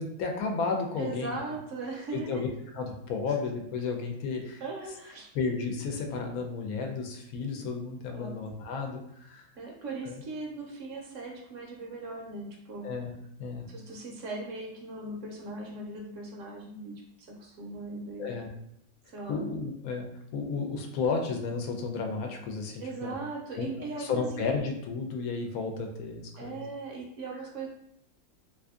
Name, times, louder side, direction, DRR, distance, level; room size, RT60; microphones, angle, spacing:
voice 1, 0.0-1.4 2.1-2.5 2.7-4.6 5.3-9.5 10.0-10.2 12.8-13.1 13.4-13.7 18.2-18.5 19.3-23.1 23.6-23.7 24.0-26.6, left 4 dB, 80° left, 3 dB, 1.0 m, -33 dB
voice 2, 1.0-2.5 3.4-3.5 4.6-5.3 8.1-8.4 9.6-12.9 13.7-18.3 19.1-19.4 22.8-24.4 26.4-27.7, right 3 dB, 65° right, 0 dB, 0.9 m, -39 dB
2.7 x 2.5 x 3.5 m, 0.76 s
omnidirectional pair, 1.5 m